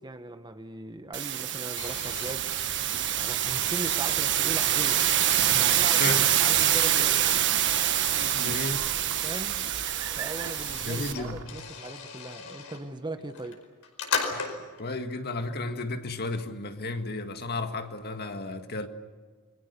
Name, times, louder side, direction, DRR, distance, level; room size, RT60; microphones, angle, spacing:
voice 1, 0.0-2.5 2.8-5.1 5.5-7.4 9.0-9.7 10.2-13.6, right 2 dB, 20° right, 1.2 m, -39 dB
sound 1, 1.1-11.1, right 11 dB, 55° right, 1.4 m, -26 dB
sound 2, 1.7-2.4 3.1-5.4 6.2-7.1 7.6-8.8 9.8-9.9 10.1-12.8 13.3-14.8, left 5 dB, 70° left, 5.0 m, -38 dB
sound 3, 1.8-11.4, right 3 dB, 80° right, 2.8 m, -44 dB
voice 2, 8.2-8.8 10.8-11.4 14.3-18.9, left 2 dB, 45° left, 1.8 m, -33 dB
29.5 x 22.5 x 6.9 m
head